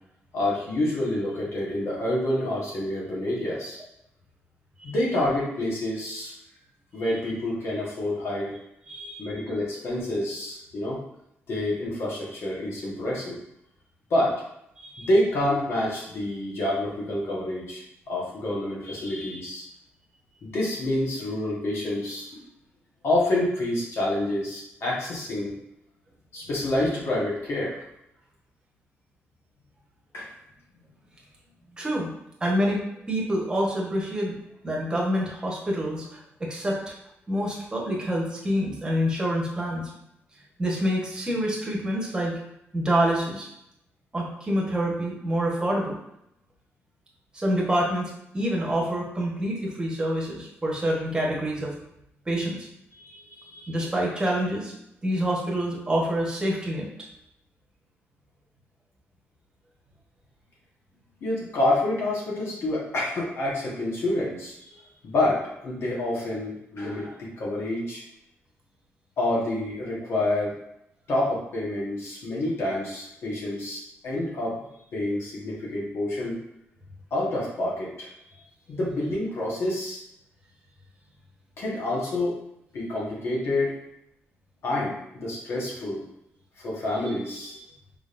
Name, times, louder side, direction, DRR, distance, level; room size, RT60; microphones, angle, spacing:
voice 1, 0.3-3.8 4.8-6.3 6.9-8.5 9.2-11.0 11.5-13.4 14.1-14.4 15.0-19.7 20.4-22.4 23.0-25.5 26.3-27.8 30.1-30.3 53.0-53.7 61.2-64.7 65.0-68.0 69.2-70.5 71.1-74.5 74.9-76.4 77.1-78.1 78.7-80.0 81.6-82.4 82.7-83.8 84.6-86.0 86.6-87.6, left 1 dB, 65° left, -4 dB, 1.4 m, -28 dB
voice 2, 8.9-9.3 14.8-15.1 31.8-32.1 32.4-32.8 33.1-34.4 34.6-36.9 37.3-39.9 40.6-42.3 42.7-43.5 44.1-45.9 47.3-51.7 52.3-52.7 53.7-54.7 55.0-56.9, equal, 20° right, -3 dB, 1.2 m, -27 dB
5.0 x 3.8 x 2.6 m, 0.79 s
cardioid pair, 130°, 5 cm